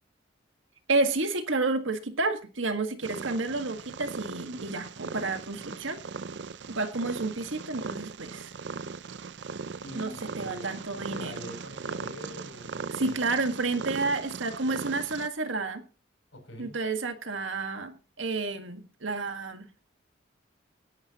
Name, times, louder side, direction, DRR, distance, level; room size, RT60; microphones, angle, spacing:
voice 1, 0.9-6.0 6.7-8.5 10.0-11.3 12.9-15.8 16.6-19.7, right 3 dB, 85° right, 7 dB, 1.7 m, -30 dB
Purr, 3.0-15.3, right 5 dB, 65° right, 0.5 m, -39 dB
voice 2, 9.8-13.2 16.3-16.7, left 1 dB, 75° left, 4 dB, 6.9 m, -45 dB
18.0 x 11.0 x 3.0 m, 0.34 s
head